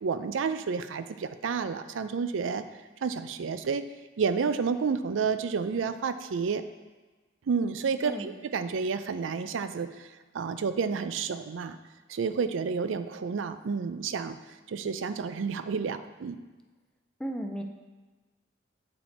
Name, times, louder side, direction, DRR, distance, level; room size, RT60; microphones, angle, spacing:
voice 1, 0.0-2.6 3.0-3.8 4.2-6.6 7.5-10.1 10.3-11.8 12.1-14.4 14.7-16.4, right 5 dB, 90° right, 11 dB, 0.4 m, -30 dB
voice 2, 8.0-8.4 17.2-17.6, right 1 dB, 5° left, 3 dB, 0.5 m, -34 dB
8.8 x 4.2 x 4.3 m, 1.3 s
head